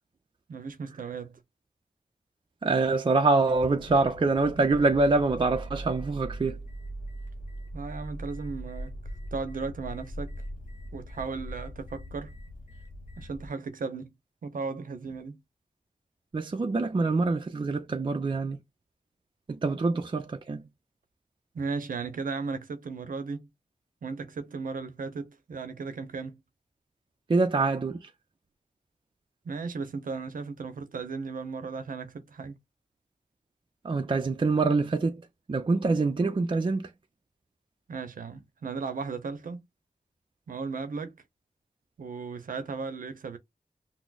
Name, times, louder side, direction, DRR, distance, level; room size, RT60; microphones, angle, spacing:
voice 1, 0.5-1.4 7.7-9.0 9.3-10.3 10.9-12.3 13.2-14.1 14.4-15.4 21.5-23.5 24.0-26.4 29.4-32.6 37.9-39.6 40.5-41.1 42.0-43.4, right 4 dB, 90° right, 0.7 m, -36 dB
voice 2, 2.6-6.6 16.3-18.6 19.5-20.6 27.3-28.1 33.8-35.2 35.5-36.9, right 3 dB, 35° right, 0.5 m, -25 dB
sound 1, 3.5-13.5, right 1 dB, 70° left, 0.9 m, -41 dB
6.0 x 2.0 x 2.3 m
cardioid pair, 55°, 14 cm